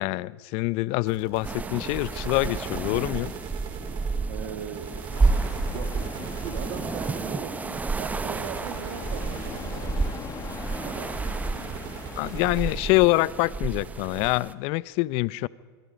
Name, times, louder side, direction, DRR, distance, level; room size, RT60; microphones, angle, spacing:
voice 1, 0.0-3.3 11.5-11.8 12.2-15.5, left 20 dB, 50° left, 21 dB, 0.5 m, -25 dB
sound 1, 1.0-14.4, right 7 dB, 35° right, 3.3 m, -41 dB
sound 2, 1.4-14.5, right 3 dB, 10° right, 0.7 m, -31 dB
voice 2, 4.3-4.9 5.6-10.1 10.8-11.1, right 8 dB, 60° right, 5 dB, 2.1 m, -39 dB
sound 3, 5.1-12.7, left 7 dB, 25° left, 1.5 m, -41 dB
25.5 x 24.0 x 5.1 m, 1.5 s
hypercardioid pair, 115°, 13 cm